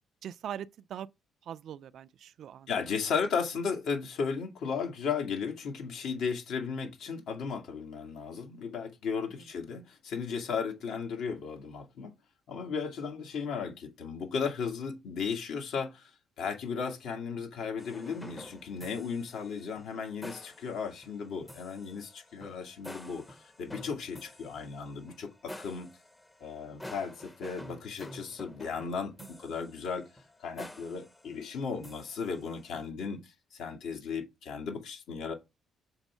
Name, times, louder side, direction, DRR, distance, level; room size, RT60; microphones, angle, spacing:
voice 1, 0.2-1.1 1.4-2.7 9.3-9.4, right 9 dB, 60° right, 0.4 m, -41 dB
voice 2, 2.7-12.1 12.5-16.1 16.4-25.9 26.4-30.1 30.4-35.3, left 5 dB, 75° left, 2.1 m, -35 dB
sound 1, 17.8-32.9, left 1 dB, 15° left, 0.7 m, -49 dB
7.1 x 3.6 x 5.5 m
cardioid pair, 140°, 0 cm